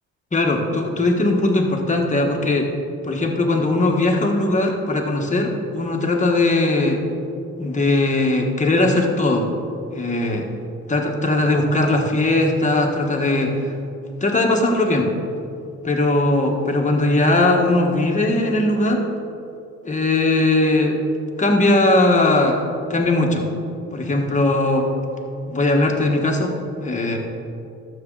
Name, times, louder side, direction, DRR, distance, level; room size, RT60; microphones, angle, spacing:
voice 1, 0.3-2.7 3.0-7.0 7.6-9.5 9.9-10.5 10.9-13.7 14.2-15.1 15.8-19.1 19.8-21.0 21.4-22.6 22.9-23.4 23.9-24.9 25.5-26.5 26.8-27.2, left 2 dB, 25° left, 1 dB, 1.6 m, -19 dB
12.5 x 7.2 x 4.1 m, 2.6 s
cardioid pair, 90°, 30 cm